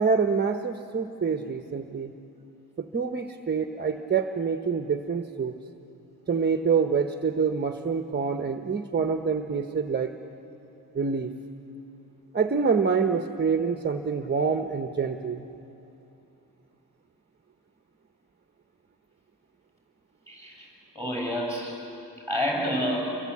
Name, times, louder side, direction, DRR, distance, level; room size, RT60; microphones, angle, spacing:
voice 1, 0.0-2.1 2.8-5.5 6.3-10.1 10.9-11.3 12.3-15.4, right 5 dB, 30° right, 7 dB, 0.8 m, -26 dB
voice 2, 20.3-20.7 21.0-21.8 22.3-23.1, equal, 10° left, 0 dB, 7.1 m, -28 dB
28.0 x 23.5 x 8.4 m, 2.9 s
wide cardioid pair, 140°, 37 cm